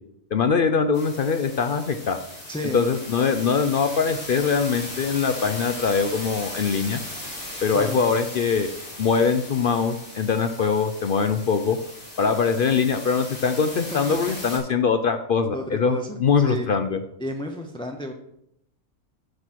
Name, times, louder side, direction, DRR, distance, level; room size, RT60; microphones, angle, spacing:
voice 1, 0.3-2.2 2.7-7.0 7.6-8.7 9.0-11.8 12.2-17.0, left 5 dB, 60° left, 8 dB, 0.6 m, -22 dB
sound 1, 0.9-14.6, left 1 dB, 75° left, 3.5 m, -38 dB
voice 2, 2.5-2.8 7.7-8.0 13.9-14.4 15.5-16.7 17.2-18.1, left 1 dB, 5° left, 3 dB, 0.5 m, -32 dB
9.7 x 6.3 x 4.5 m, 0.77 s
omnidirectional pair, 1.4 m